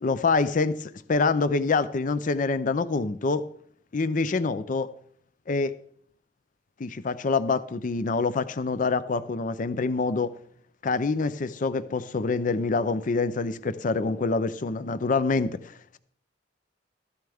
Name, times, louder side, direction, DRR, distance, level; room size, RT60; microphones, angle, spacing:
voice 1, 0.0-3.4 3.9-4.9 5.5-5.7 6.8-10.3 10.8-16.0, left 4 dB, 45° left, 14 dB, 0.5 m, -26 dB
14.0 x 12.5 x 3.5 m, 0.63 s
head